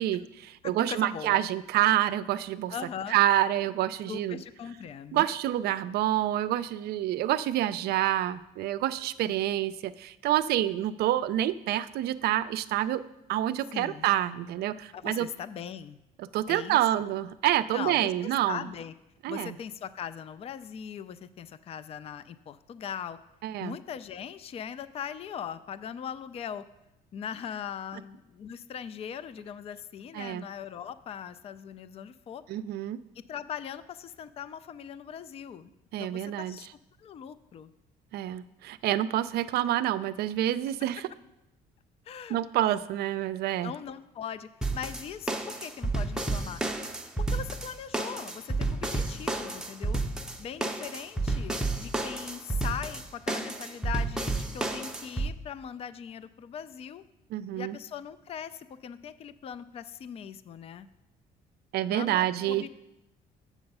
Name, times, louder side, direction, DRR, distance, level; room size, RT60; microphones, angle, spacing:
voice 1, 0.0-2.7 3.1-4.4 5.1-13.0 13.3-15.3 16.2-18.6 19.2-19.5 23.4-23.8 30.1-30.5 32.5-33.0 35.9-36.6 38.1-41.0 42.3-43.7 57.3-57.8 61.7-62.7, right 13 dB, 70° right, 14 dB, 0.4 m, -27 dB
voice 2, 0.6-1.4 2.7-3.2 4.1-5.3 13.7-14.1 14.9-16.0 16.5-17.1 17.7-18.1 18.5-18.9 19.3-23.2 23.6-26.6 27.1-32.4 33.2-35.7 36.0-36.7 37.0-37.7 42.1-42.4 43.6-46.6 47.2-50.0 50.4-57.0 57.6-60.9 61.9-62.7, left 8 dB, 35° left, 14 dB, 0.4 m, -40 dB
sound 1, 44.6-55.3, right 2 dB, 5° right, 0.6 m, -31 dB
7.2 x 6.8 x 5.4 m, 0.90 s
cardioid pair, 110°, 17 cm